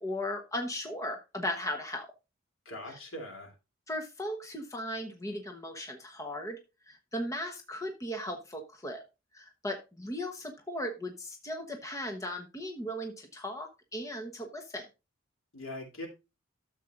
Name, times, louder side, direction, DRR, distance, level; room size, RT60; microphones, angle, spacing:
voice 1, 0.0-2.1 2.9-3.0 3.9-6.6 6.9-9.0 9.3-14.9, left 1 dB, 15° left, 1.0 m, -37 dB
voice 2, 2.6-3.5 15.5-16.1, left 1 dB, 70° left, 3.1 m, -41 dB
12.5 x 7.4 x 2.5 m
head